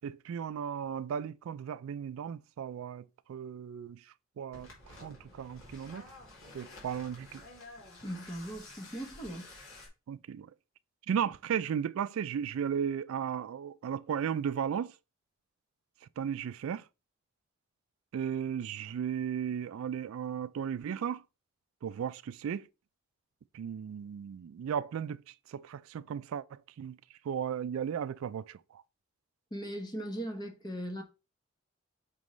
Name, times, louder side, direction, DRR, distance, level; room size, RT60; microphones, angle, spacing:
voice 1, 0.0-4.0 4.4-4.7 5.0-6.0 6.5-7.4 10.1-10.5 11.1-14.9 16.2-16.8 18.1-21.2 21.8-22.7 23.5-25.2 25.5-27.0 27.2-28.8, right 8 dB, 75° right, 0.3 m, -35 dB
sound 1, 4.5-9.9, left 2 dB, 70° left, 2.7 m, -51 dB
voice 2, 8.0-9.5 29.5-31.0, right 1 dB, 20° left, 1.0 m, -39 dB
6.0 x 5.3 x 3.1 m
head